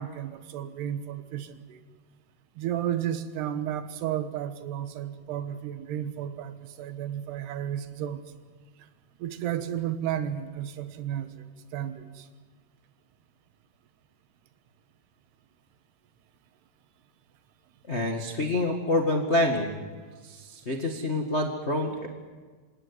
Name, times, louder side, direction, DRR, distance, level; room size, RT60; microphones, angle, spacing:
voice 1, 0.0-1.8 2.6-8.2 9.2-11.4 11.7-12.3, right 10 dB, 80° right, 11 dB, 3.3 m, -33 dB
voice 2, 17.9-19.8 20.2-22.1, left 1 dB, 75° left, 3 dB, 0.6 m, -27 dB
26.5 x 17.5 x 9.8 m, 1.5 s
omnidirectional pair, 4.7 m